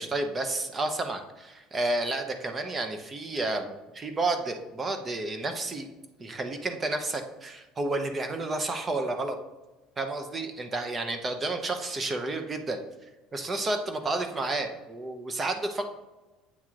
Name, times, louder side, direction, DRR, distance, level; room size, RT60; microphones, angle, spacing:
voice 1, 0.0-5.9 6.2-9.4 10.0-12.8 13.3-15.9, right 2 dB, 25° right, 6 dB, 0.8 m, -31 dB
8.5 x 3.0 x 3.8 m, 1.1 s
supercardioid pair, 110°, 0 cm